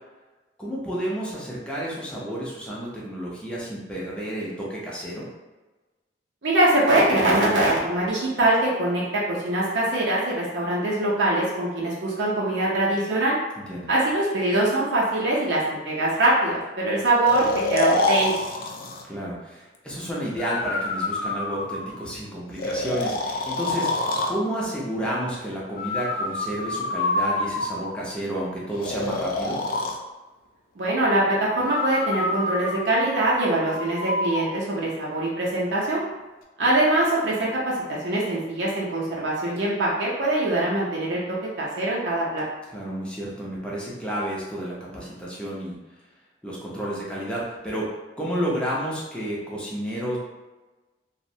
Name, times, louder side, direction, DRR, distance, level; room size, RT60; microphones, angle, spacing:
voice 1, 0.6-5.3 13.6-13.9 19.0-23.9 24.3-29.6 42.7-45.8 46.4-50.2, equal, 5° left, -6 dB, 0.6 m, -31 dB
voice 2, 6.4-13.4 13.9-18.3 30.8-36.0 36.6-42.4, right 1 dB, 70° right, -5 dB, 0.6 m, -23 dB
Breathing, 17.3-19.0 20.4-22.0 22.6-24.4 25.8-28.0 28.8-30.0 31.6-34.5, left 2 dB, 55° left, 0.3 m, -27 dB
2.4 x 2.1 x 2.7 m, 1.2 s
head